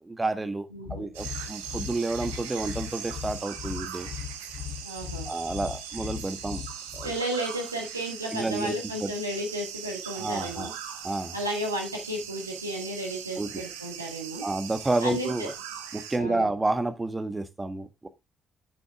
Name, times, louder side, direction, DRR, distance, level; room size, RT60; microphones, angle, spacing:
voice 1, 0.0-4.1 5.2-6.6 6.9-7.1 8.3-8.7 9.0-9.1 10.2-10.7 11.0-11.4 13.4-13.6 14.4-15.5 15.9-18.1, right 2 dB, 20° right, 1.5 m, -30 dB
voice 2, 0.7-1.1 4.8-5.3 7.0-10.7 11.3-14.5 15.0-15.5 16.1-16.5, right 1 dB, 85° right, 1.7 m, -33 dB
sound 1, 0.9-7.2, left 9 dB, 50° left, 1.1 m, -38 dB
sound 2, 1.1-16.2, right 9 dB, 70° right, 1.1 m, -40 dB
9.0 x 7.1 x 3.5 m
figure-of-eight pair, 45°, 0 cm